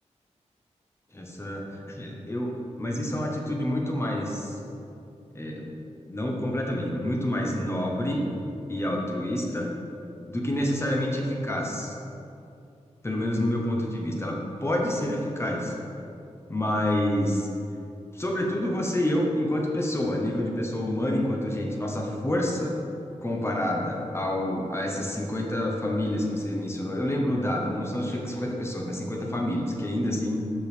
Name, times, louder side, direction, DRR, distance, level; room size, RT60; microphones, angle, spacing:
voice 1, 1.1-4.6 5.3-5.7 6.1-8.2 8.7-9.7 10.3-12.0 13.0-15.7 16.5-17.5 18.1-22.7 23.2-30.5, left 1 dB, 20° left, -1 dB, 1.1 m, -28 dB
6.2 x 5.8 x 5.2 m, 2.6 s
wide cardioid pair, 95°, 12 cm